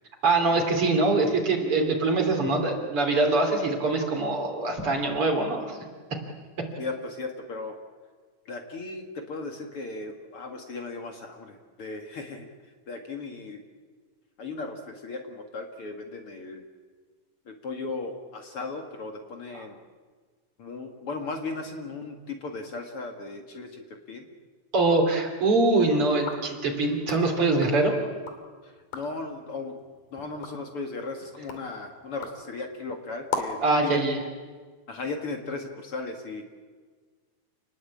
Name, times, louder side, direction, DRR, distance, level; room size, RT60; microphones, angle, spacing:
voice 1, 0.2-5.8 19.5-19.6 24.7-27.9 33.6-34.2, right 3 dB, 45° right, 3 dB, 4.0 m, -23 dB
voice 2, 6.8-7.8 8.5-12.5 12.9-13.6 14.4-16.6 17.5-19.8 20.6-24.3 28.6-29.8 30.1-34.0 34.9-36.4, left 3 dB, 50° left, 4 dB, 2.6 m, -36 dB
sound 1, 26.1-28.5 28.8-29.3 29.7-33.7, left 4 dB, 80° left, 4.3 m, -39 dB
29.0 x 20.0 x 8.6 m, 1.5 s
omnidirectional pair, 3.5 m